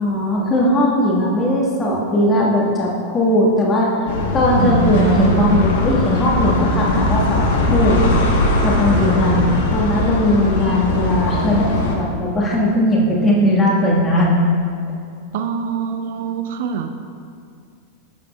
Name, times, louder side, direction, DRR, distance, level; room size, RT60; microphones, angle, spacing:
voice 1, 0.0-3.9 4.3-8.0 8.4-9.4 9.7-14.4, left 1 dB, 20° left, -3 dB, 1.5 m, -18 dB
sound 1, 4.1-12.0, left 1 dB, 55° left, 1.0 m, -20 dB
voice 2, 4.6-5.7 9.0-9.2 15.3-17.1, right 6 dB, 55° right, 7 dB, 0.4 m, -23 dB
9.3 x 7.4 x 2.3 m, 2.4 s
figure-of-eight pair, 90°, 0 cm